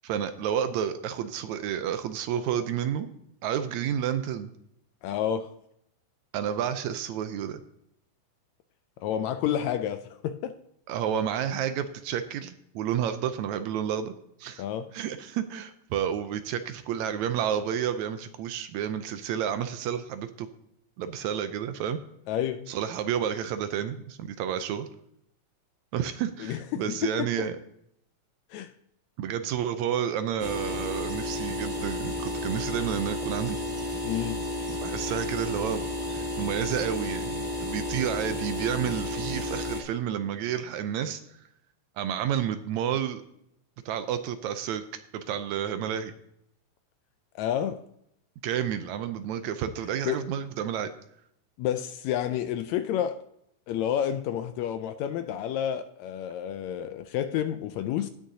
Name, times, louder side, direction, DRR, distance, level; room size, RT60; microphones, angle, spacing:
voice 1, 0.0-3.1 3.4-4.5 6.3-7.6 10.9-14.1 14.4-14.6 14.9-20.5 21.0-22.0 22.7-24.9 25.9-27.5 29.2-33.6 34.7-35.8 36.1-41.2 42.0-43.2 43.9-44.8 45.1-46.1 48.4-50.9, right 9 dB, 75° right, 1.9 m, -30 dB
voice 2, 5.0-5.6 9.0-10.6 14.6-14.9 22.3-22.7 26.4-27.3 28.5-28.7 34.0-34.4 47.3-47.8 50.0-50.3 51.6-53.2 53.7-58.1, left 10 dB, 80° left, 1.7 m, -30 dB
sound 1, 30.4-39.8, left 1 dB, 25° right, 0.5 m, -32 dB
18.5 x 6.4 x 2.8 m
omnidirectional pair, 3.5 m